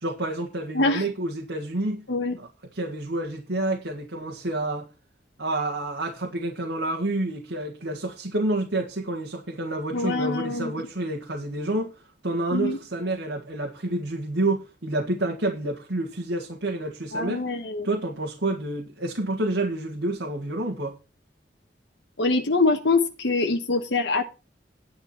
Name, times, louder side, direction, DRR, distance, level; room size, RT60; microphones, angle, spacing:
voice 1, 0.0-2.0 2.4-4.9 5.4-11.9 12.2-17.4 17.8-21.0, right 2 dB, 90° right, 1.8 m, -29 dB
voice 2, 9.9-10.7 12.5-12.8 17.1-17.9 22.2-24.2, left 3 dB, 80° left, 1.2 m, -24 dB
10.5 x 8.9 x 4.3 m
head